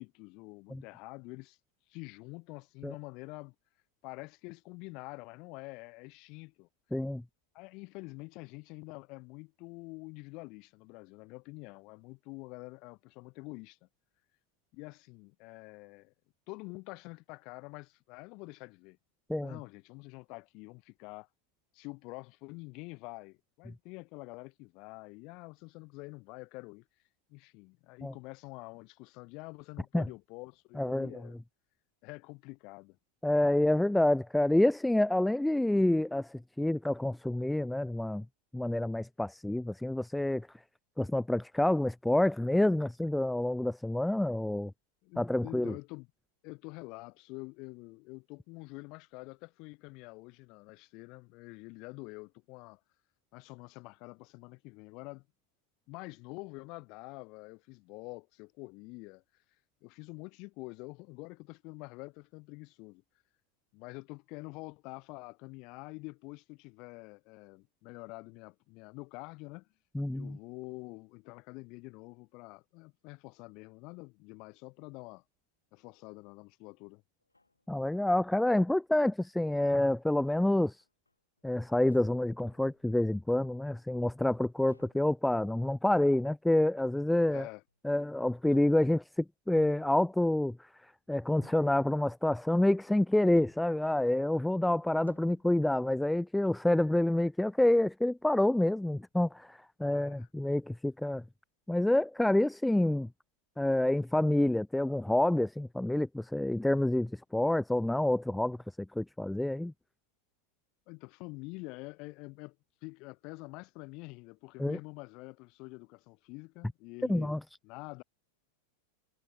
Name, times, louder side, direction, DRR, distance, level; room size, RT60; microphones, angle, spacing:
voice 1, 0.0-1.6 1.9-3.5 4.0-6.7 7.5-13.9 14.7-16.1 16.5-19.0 19.4-21.3 21.7-26.9 27.3-31.4 32.0-33.0 45.0-46.1 46.4-52.8 53.3-55.3 55.9-59.4 59.8-63.0 63.7-69.7 70.1-75.2 75.7-77.0 87.3-87.6 99.9-100.3 110.9-112.6 112.8-118.0, left 27 dB, 40° left, 6.0 m, -47 dB
voice 2, 6.9-7.2 19.3-19.5 28.0-28.1 29.9-30.0 30.8-31.1 33.2-38.2 38.5-40.5 41.0-44.7 45.2-45.7 69.9-70.4 77.7-80.8 81.4-87.5 87.8-90.7 91.1-101.2 101.7-103.1 103.6-108.6 109.0-109.7 114.6-114.8 117.1-117.4, left 1 dB, 5° left, 0.6 m, -28 dB
sound 1, 77.2-78.4 79.0-79.4 79.9-80.1 80.6-81.5 81.8-83.4 84.7-85.2 86.8-87.2 87.7-87.8 88.3-89.1 89.5-90.2 91.3-91.8 93.0-93.9 94.6-94.7 95.0-95.6, left 2 dB, 85° left, 6.9 m, -61 dB
figure-of-eight pair, 90°, 0 cm